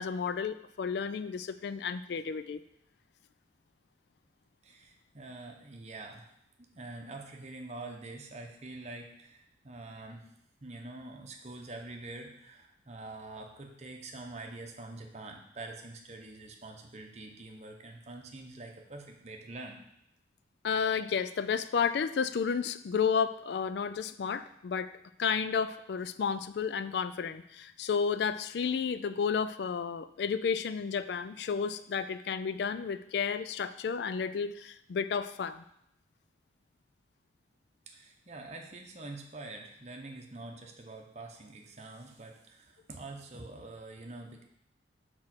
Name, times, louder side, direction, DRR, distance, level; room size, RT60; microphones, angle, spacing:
voice 1, 0.0-2.6 20.6-24.9 25.2-35.6, left 6 dB, 65° left, 13 dB, 0.3 m, -32 dB
voice 2, 4.6-6.3 6.6-10.3 10.6-19.8 37.9-44.4, right 2 dB, 35° right, 2 dB, 0.8 m, -45 dB
4.8 x 4.3 x 5.9 m, 0.77 s
head